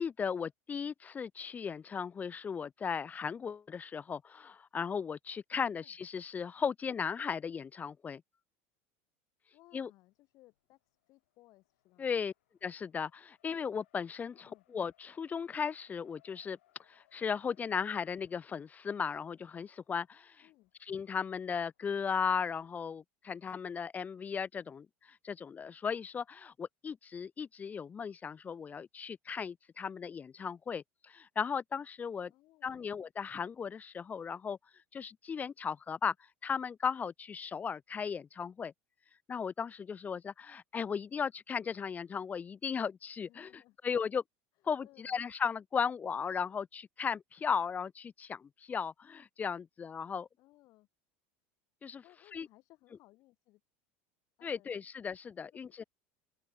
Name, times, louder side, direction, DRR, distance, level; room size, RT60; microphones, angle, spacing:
voice 1, 0.0-8.2 9.7-9.9 12.0-12.3 12.6-16.6 16.9-20.5 20.8-32.3 32.6-34.6 34.9-36.1 36.4-38.7 39.3-44.2 44.6-50.3 51.8-52.0 52.3-52.5 54.4-55.8, left 6 dB, 25° left, 0.4 m, -36 dB
voice 2, 9.5-12.1 14.3-14.6 20.4-20.7 32.3-32.8 43.3-43.8 44.8-45.2 50.4-50.9 52.0-53.6 54.4-54.8 55.3-55.7, left 18 dB, 60° left, 4.9 m, -63 dB
Race car auto racing, 10.1-22.7, left 15 dB, 90° left, 7.7 m, -74 dB
open air
supercardioid pair, 105°, 7 cm